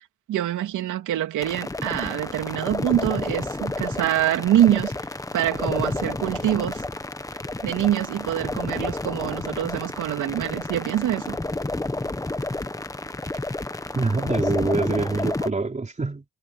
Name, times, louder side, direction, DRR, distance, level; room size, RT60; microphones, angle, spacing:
voice 1, 0.3-4.9 5.3-6.8 7.6-11.4, right 12 dB, 80° right, 3.2 m, -25 dB
sound 1, 1.4-15.5, left 2 dB, 10° left, 1.2 m, -30 dB
voice 2, 13.9-16.2, right 3 dB, 25° right, 4.7 m, -25 dB
cardioid pair, 90°, 30 cm